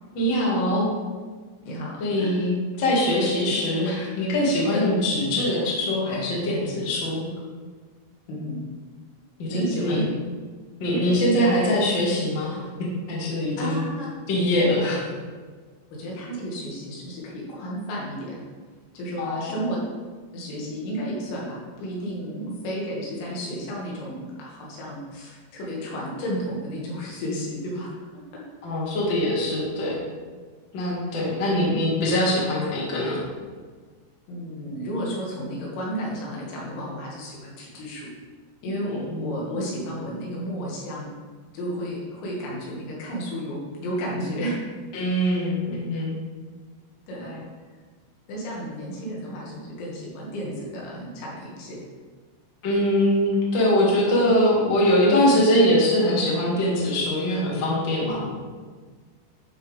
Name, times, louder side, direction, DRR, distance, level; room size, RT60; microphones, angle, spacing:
voice 1, 0.1-0.9 2.0-7.3 9.4-10.0 10.8-13.8 14.3-15.1 19.2-19.5 28.6-30.0 30.7-33.2 39.1-39.3 44.9-46.1 47.2-47.4 52.6-58.3, left 1 dB, 60° left, -5 dB, 1.2 m, -23 dB
voice 2, 1.6-2.4 3.4-3.5 4.7-4.8 8.3-8.6 9.5-10.0 11.1-11.4 13.6-14.1 14.8-14.9 15.9-18.4 18.9-19.8 20.3-28.1 28.7-28.8 31.1-31.2 34.3-38.1 38.6-41.1 41.5-44.6 47.1-47.3 48.3-51.8, equal, 90° left, -4 dB, 4.8 m, -32 dB
11.0 x 6.2 x 3.5 m, 1.5 s
omnidirectional pair, 5.9 m